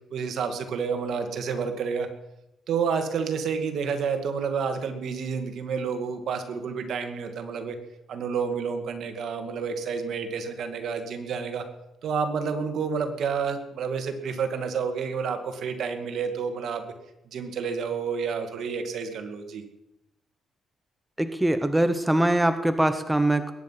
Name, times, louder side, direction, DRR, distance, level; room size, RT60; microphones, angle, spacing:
voice 1, 0.1-2.1 2.7-7.8 8.1-11.6 12.0-16.8 17.3-19.6, right 6 dB, 70° right, 7 dB, 2.2 m, -29 dB
voice 2, 21.2-23.5, right 1 dB, 10° right, 10 dB, 1.0 m, -23 dB
21.0 x 10.0 x 5.8 m, 0.91 s
cardioid pair, 90°, 0 cm